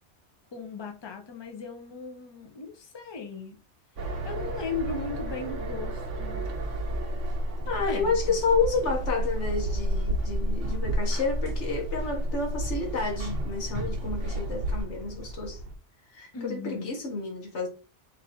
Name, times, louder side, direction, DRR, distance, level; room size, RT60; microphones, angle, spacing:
voice 1, 0.5-3.6 4.2-6.4 7.8-8.4 16.3-16.9, left 4 dB, 25° left, 0.7 m, -37 dB
sound 1, 4.0-14.8, right 1 dB, 80° right, 1.4 m, -31 dB
sound 2, 7.5-15.8, right 1 dB, 55° right, 1.1 m, -43 dB
voice 2, 7.7-15.6 16.1-17.7, left 4 dB, 70° left, 1.5 m, -30 dB
4.2 x 2.6 x 4.1 m
omnidirectional pair, 1.2 m